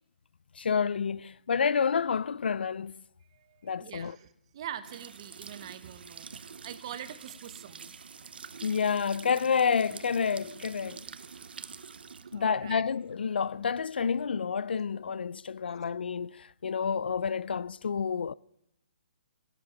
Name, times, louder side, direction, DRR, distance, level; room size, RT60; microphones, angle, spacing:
voice 1, 0.6-3.0 3.6-4.2 8.6-11.0 12.3-18.3, left 6 dB, 85° left, 0.3 m, -29 dB
voice 2, 3.3-7.9 12.3-12.8 15.7-15.8, right 10 dB, 30° right, 0.7 m, -44 dB
sound 1, 4.8-14.5, right 6 dB, 75° right, 0.7 m, -47 dB
17.5 x 7.8 x 5.1 m
hypercardioid pair, 170°, 5 cm